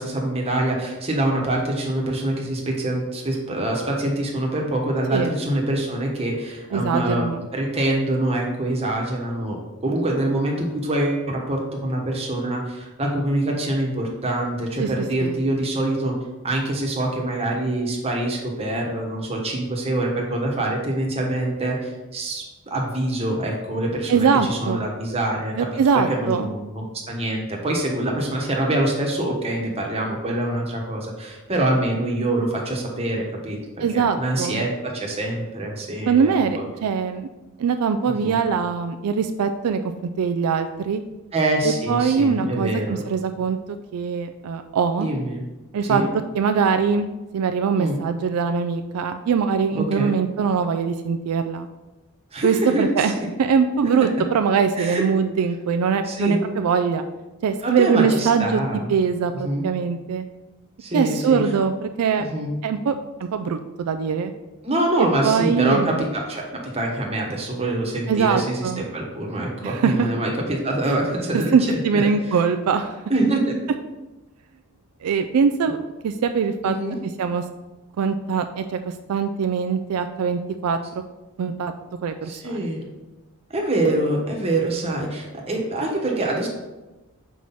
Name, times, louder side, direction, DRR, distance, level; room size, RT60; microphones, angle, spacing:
voice 1, 0.0-7.2 7.5-16.1 16.4-25.7 25.9-36.6 38.1-38.4 41.3-43.0 45.0-45.4 45.8-46.1 47.8-48.0 49.7-50.1 52.3-53.1 53.8-53.9 54.8-55.0 56.0-56.4 57.6-58.8 59.4-59.7 60.8-61.4 62.2-62.6 64.6-72.0 73.1-73.5 76.6-77.0 82.3-82.8 83.5-86.5, right 1 dB, 30° right, -1 dB, 1.2 m, -25 dB
voice 2, 6.7-7.5 14.8-14.9 15.2-15.4 24.1-24.8 25.6-26.5 33.8-34.6 36.1-37.3 37.6-39.8 40.2-41.0 41.6-43.6 43.9-45.1 45.7-46.0 46.3-51.7 52.4-53.1 53.4-57.0 57.4-58.6 58.9-60.3 60.9-62.3 62.6-64.3 65.0-66.0 68.1-68.9 69.6-70.1 70.8-71.0 71.3-73.0 75.0-75.8 76.0-76.7 77.2-77.4 78.0-80.8 81.4-81.7 82.0-82.7, right 6 dB, 80° right, 8 dB, 0.4 m, -22 dB
5.8 x 4.7 x 4.1 m, 1.1 s
head